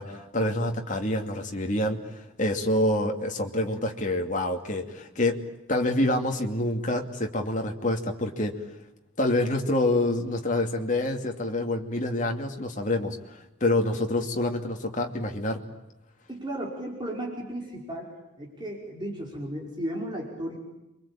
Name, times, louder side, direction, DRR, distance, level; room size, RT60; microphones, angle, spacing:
voice 1, 0.0-5.4 5.7-8.7 9.2-15.6, left 1 dB, 35° left, 3 dB, 2.6 m, -27 dB
voice 2, 16.3-18.1 18.4-20.6, right 1 dB, 20° right, -1 dB, 5.1 m, -34 dB
28.0 x 24.0 x 8.8 m, 0.92 s
head